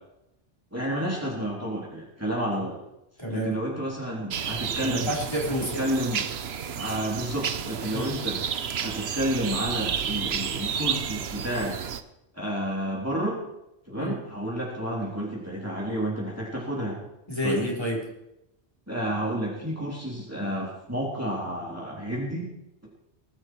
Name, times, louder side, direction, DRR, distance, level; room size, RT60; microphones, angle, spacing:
voice 1, 0.7-2.8 3.3-5.1 5.8-6.4 6.8-8.4 8.8-11.7 12.3-13.4 13.9-17.0 17.4-17.7 18.9-22.5, equal, 15° right, -4 dB, 3.5 m, -30 dB
voice 2, 3.2-3.5 4.8-5.9 7.9-8.1 14.0-14.2 17.3-18.1, equal, 25° left, -3 dB, 4.2 m, -29 dB
sound 1, 4.3-12.0, right 7 dB, 70° right, 1.1 m, -31 dB
20.0 x 12.0 x 4.7 m, 0.88 s
omnidirectional pair, 1.1 m